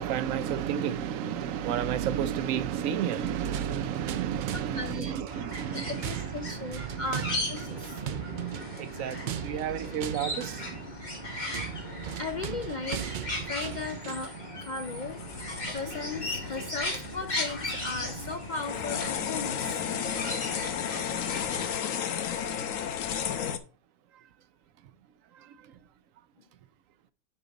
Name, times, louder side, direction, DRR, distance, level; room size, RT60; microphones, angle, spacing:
voice 1, 0.0-5.0 5.3-5.8 8.1-10.8, right 9 dB, 85° right, 1.0 m, -31 dB
sound 1, 3.1-14.4, right 9 dB, 65° right, 0.5 m, -38 dB
voice 2, 4.5-5.2 5.7-8.0 12.2-13.1 13.4-19.8, left 3 dB, 60° left, 0.5 m, -37 dB
sound 2, 5.3-21.7, left 1 dB, 35° left, 2.0 m, -37 dB
sound 3, 14.8-23.6, left 8 dB, 85° left, 1.2 m, -34 dB
10.0 x 4.3 x 3.9 m
omnidirectional pair, 1.3 m